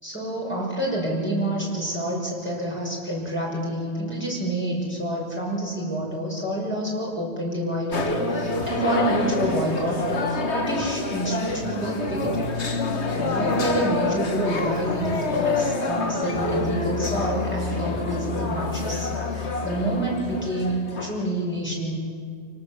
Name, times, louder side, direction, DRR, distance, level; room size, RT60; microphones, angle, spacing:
voice 1, 0.0-12.5 13.1-22.0, right 1 dB, 10° left, -4 dB, 5.9 m, -28 dB
sound 1, 7.9-21.3, left 3 dB, 85° left, 2.0 m, -27 dB
28.5 x 18.5 x 7.4 m, 2.2 s
omnidirectional pair, 1.1 m